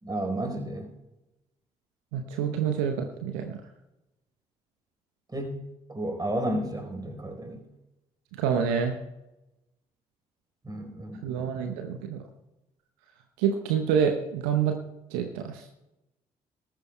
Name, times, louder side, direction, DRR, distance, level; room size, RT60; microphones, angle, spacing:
voice 1, 0.0-0.9 5.3-5.6 5.9-7.6 10.6-11.6, right 1 dB, 20° right, 4 dB, 4.1 m, -32 dB
voice 2, 2.1-3.6 8.4-9.0 11.2-12.2 13.4-14.8 15.1-15.7, right 7 dB, 70° right, 5 dB, 0.8 m, -27 dB
19.0 x 13.5 x 2.2 m, 0.97 s
figure-of-eight pair, 40°, 19 cm